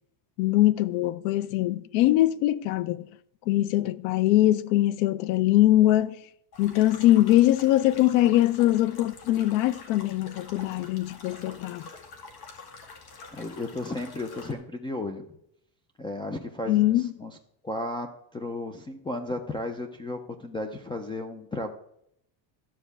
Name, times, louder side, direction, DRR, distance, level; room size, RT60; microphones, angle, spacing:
voice 1, 0.4-3.1 3.5-6.2 6.6-11.9 16.7-17.1, left 15 dB, 85° left, 0.8 m, -22 dB
sound 1, 6.5-14.5, left 4 dB, 50° left, 2.1 m, -46 dB
voice 2, 13.3-15.2 16.0-17.3 17.6-21.7, left 2 dB, 10° left, 0.3 m, -34 dB
12.5 x 4.4 x 8.3 m
cardioid pair, 150°, 50 cm